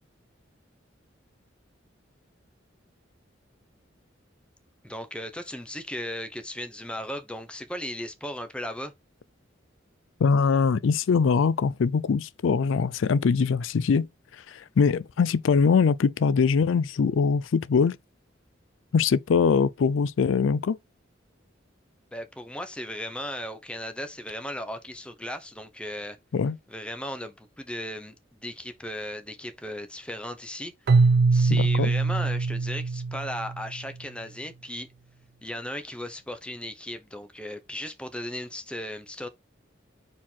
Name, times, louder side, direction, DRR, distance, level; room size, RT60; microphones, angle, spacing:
voice 1, 4.8-8.9 22.1-26.2 26.7-30.7 31.3-34.9 35.4-39.3, left 1 dB, 5° left, 0.9 m, -36 dB
voice 2, 10.2-14.1 14.5-18.0 18.9-20.8 26.3-26.6 31.5-31.9, left 5 dB, 80° left, 0.4 m, -22 dB
Keyboard (musical), 30.9-33.8, right 4 dB, 55° right, 0.4 m, -22 dB
4.6 x 4.3 x 5.8 m
head